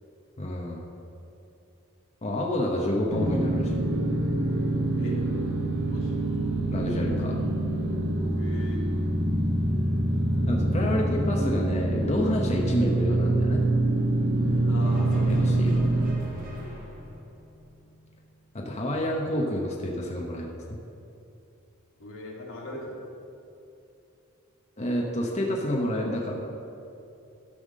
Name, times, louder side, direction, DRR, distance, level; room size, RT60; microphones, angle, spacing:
voice 1, 0.4-0.8 2.2-3.8 6.7-7.4 10.5-13.6 15.3-15.8 18.5-20.6 24.8-26.3, left 1 dB, 35° left, -1 dB, 0.9 m, -29 dB
sound 1, 3.1-16.2, right 1 dB, 60° right, 1.1 m, -25 dB
voice 2, 8.4-8.8 14.5-15.8 16.5-16.7 22.0-23.1, left 1 dB, 85° left, -2 dB, 2.1 m, -40 dB
sound 2, 14.8-18.3, equal, 40° right, 2.0 m, -44 dB
12.0 x 5.7 x 6.4 m, 2.7 s
head